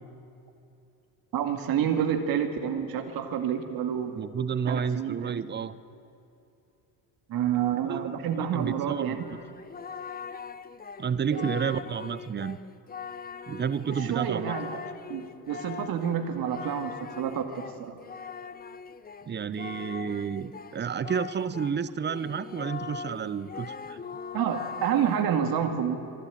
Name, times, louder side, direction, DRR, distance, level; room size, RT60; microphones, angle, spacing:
voice 1, 1.3-4.2 4.7-5.4 7.3-9.3 11.3-11.5 13.9-14.8 15.1-18.0 24.3-26.0, right 8 dB, 60° right, 6 dB, 2.3 m, -29 dB
voice 2, 4.2-5.7 7.9-9.2 11.0-12.6 13.5-14.5 19.3-24.0, right 7 dB, 25° right, 16 dB, 0.9 m, -31 dB
Singing, 8.6-21.8 22.0-25.3, left 6 dB, 20° left, 0.8 m, -41 dB
24.5 x 11.5 x 9.3 m, 2.7 s
supercardioid pair, 85°, 41 cm